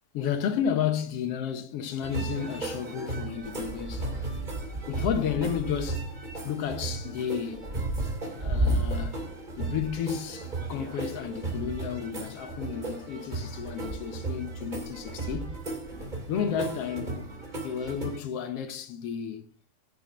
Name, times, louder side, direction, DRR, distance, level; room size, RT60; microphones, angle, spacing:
voice 1, 0.1-4.3 4.9-6.1 6.4-7.7 8.4-9.2 9.6-15.6 16.3-19.5, left 8 dB, 70° left, 1.4 m, -32 dB
sound 1, 2.0-18.2, right 2 dB, 15° right, 2.0 m, -34 dB
11.0 x 6.0 x 6.2 m
omnidirectional pair, 4.3 m